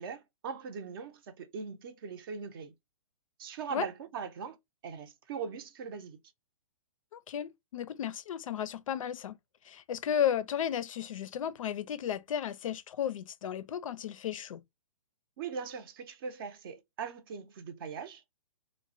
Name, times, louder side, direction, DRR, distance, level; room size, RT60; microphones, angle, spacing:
voice 1, 0.0-2.7 3.4-4.6 4.8-6.2 15.4-18.3, right 6 dB, 40° right, 0.5 m, -40 dB
voice 2, 7.1-9.4 9.6-14.6, left 9 dB, 70° left, 0.4 m, -34 dB
3.1 x 2.1 x 2.5 m
hypercardioid pair, 150°, 18 cm